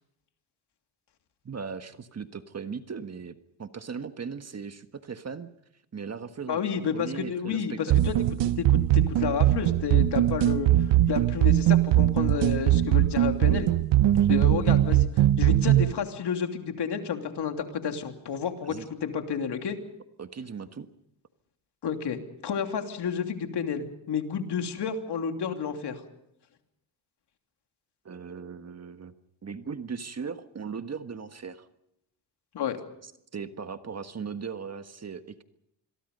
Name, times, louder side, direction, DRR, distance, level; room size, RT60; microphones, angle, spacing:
voice 1, 1.4-3.3 3.6-5.5 5.9-6.6 6.9-8.1 18.6-18.9 20.2-20.9 28.0-29.1 29.4-31.7 33.3-35.4, right 6 dB, 35° right, 9 dB, 1.5 m, -38 dB
voice 2, 6.5-8.2 8.4-13.7 14.3-18.8 19.0-19.8 21.8-26.0 32.5-32.8, left 7 dB, 60° left, 5 dB, 3.0 m, -31 dB
sound 1, 7.9-15.9, right 13 dB, 70° right, 0.9 m, -21 dB
27.0 x 22.0 x 5.4 m, 0.78 s
cardioid pair, 85°, 45 cm